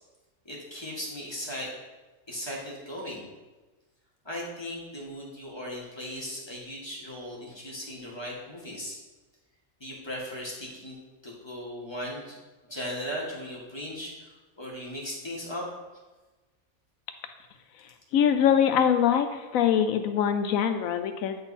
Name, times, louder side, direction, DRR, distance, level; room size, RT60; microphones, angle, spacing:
voice 1, 0.4-1.8 2.3-3.3 4.2-9.0 9.8-11.0 11.2-12.4 12.7-15.7, equal, 20° left, -4 dB, 1.6 m, -37 dB
voice 2, 18.1-21.4, left 8 dB, 80° left, 8 dB, 1.0 m, -23 dB
9.5 x 4.0 x 4.1 m, 1.2 s
omnidirectional pair, 1.4 m